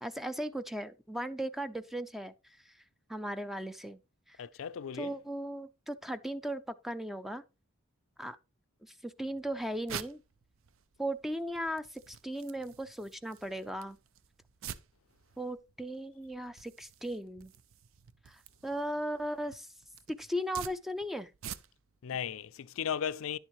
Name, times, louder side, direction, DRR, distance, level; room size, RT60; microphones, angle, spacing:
voice 1, 0.0-2.8 3.1-4.0 4.3-4.4 4.9-7.4 8.2-8.4 8.8-10.2 11.0-14.0 15.4-17.5 18.3-19.7 20.1-21.3, equal, ahead, 0.4 m, -37 dB
voice 2, 4.4-5.1 22.0-23.4, left 8 dB, 65° left, 0.4 m, -36 dB
sound 1, 9.2-22.0, right 8 dB, 65° right, 0.5 m, -49 dB
10.5 x 7.2 x 3.0 m
head